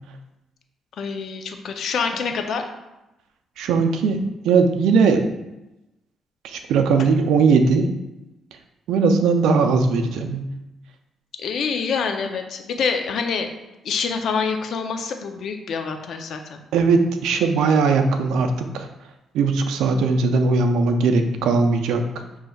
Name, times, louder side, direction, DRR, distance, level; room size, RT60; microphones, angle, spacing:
voice 1, 1.0-2.6 11.4-13.5 13.8-16.6, left 5 dB, 65° left, 5 dB, 0.5 m, -26 dB
voice 2, 3.6-5.3 6.4-7.9 8.9-10.5 16.7-18.9 19.3-22.0, right 4 dB, 85° right, 6 dB, 0.4 m, -19 dB
6.3 x 3.1 x 2.3 m, 0.97 s
cardioid pair, 90°, 0 cm